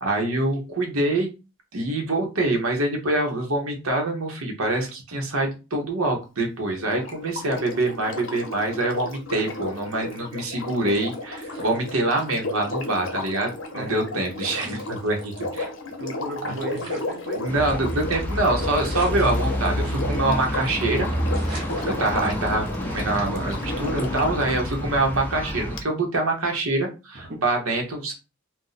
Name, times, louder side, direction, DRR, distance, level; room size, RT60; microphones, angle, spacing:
voice 1, 0.0-1.3 1.7-15.7 16.4-16.5 17.4-21.1 21.8-28.1, right 2 dB, 90° right, 2 dB, 0.9 m, -25 dB
Sink (filling or washing), 6.8-24.6 25.8-25.9, left 2 dB, 70° left, 0.7 m, -34 dB
sound 1, 11.4-12.6 12.9-13.0 14.0-14.1 14.4-15.5 16.0-16.1 16.3-16.4 16.7-18.3 18.8-20.1 20.3-20.6 21.0-21.1 21.3-22.7 23.2-23.5, right 2 dB, 20° right, 0.9 m, -42 dB
voice 2, 13.7-14.2 16.0-17.5 27.3-27.4, right 2 dB, 50° right, 0 dB, 0.7 m, -35 dB
sound 2, 17.5-25.8, equal, 10° left, 0.4 m, -28 dB
2.6 x 2.1 x 4.0 m, 0.29 s
head